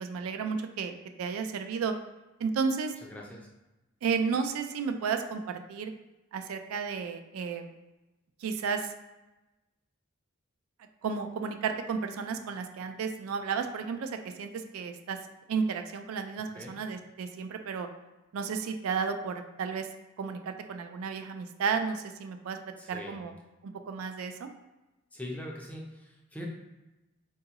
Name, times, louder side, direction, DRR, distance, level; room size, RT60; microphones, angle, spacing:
voice 1, 0.0-1.9 2.4-3.0 4.0-5.9 6.3-7.7 8.4-8.9 11.0-15.2 15.5-17.9 18.3-19.9 20.2-22.6 22.9-23.3 23.6-24.5, right 5 dB, 80° right, 7 dB, 0.3 m, -33 dB
voice 2, 3.0-3.5 16.5-16.8 22.8-23.2 25.1-26.5, left 1 dB, 5° left, -1 dB, 0.4 m, -42 dB
3.8 x 2.4 x 2.8 m, 1.0 s
head